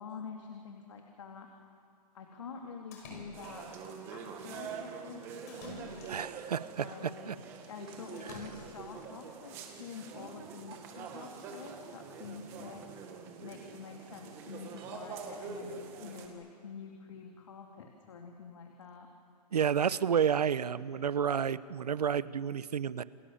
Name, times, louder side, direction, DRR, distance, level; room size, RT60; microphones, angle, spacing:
voice 1, 0.0-1.5 2.1-6.2 6.8-7.3 7.7-12.8 13.4-19.1, left 5 dB, 50° left, 2 dB, 2.8 m, -47 dB
Splash splatter, 2.9-3.9 5.5-6.5 8.2-9.0, left 2 dB, 25° left, 5.1 m, -49 dB
sound 1, 3.3-16.3, right 5 dB, 10° right, 1.7 m, -45 dB
voice 2, 6.1-7.3 8.2-8.4 19.5-23.0, right 8 dB, 70° right, 16 dB, 1.0 m, -30 dB
sound 2, 7.9-9.2 10.7-11.7 14.8-15.9, right 5 dB, 40° right, 6.6 m, -62 dB
29.0 x 27.0 x 7.3 m, 2.2 s
hypercardioid pair, 180°, 21 cm